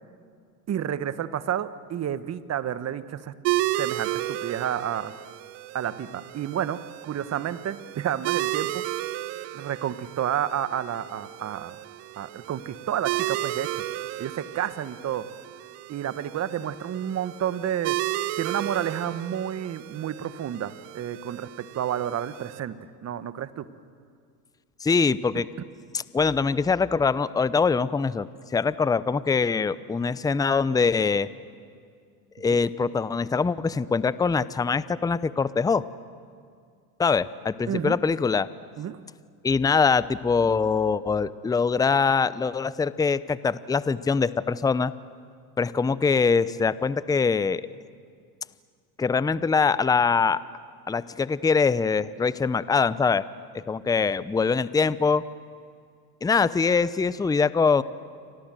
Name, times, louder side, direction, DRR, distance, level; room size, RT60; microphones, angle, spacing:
voice 1, 0.7-3.3 3.7-5.1 5.7-8.9 9.5-11.8 12.2-13.8 14.2-15.3 15.9-18.0 18.4-23.7 32.5-32.6 37.7-38.0 38.8-39.0, right 10 dB, 35° right, 14 dB, 1.3 m, -30 dB
sound 1, 3.4-22.6, right 16 dB, 60° right, 1.3 m, -33 dB
voice 2, 24.8-25.5 25.9-31.3 32.4-35.8 37.0-38.5 39.4-44.9 45.6-47.6 49.0-50.4 50.9-53.3 53.5-55.2 56.2-57.8, left 5 dB, 10° left, 17 dB, 0.6 m, -23 dB
29.5 x 24.5 x 7.7 m, 2.2 s
hypercardioid pair, 95°, 46 cm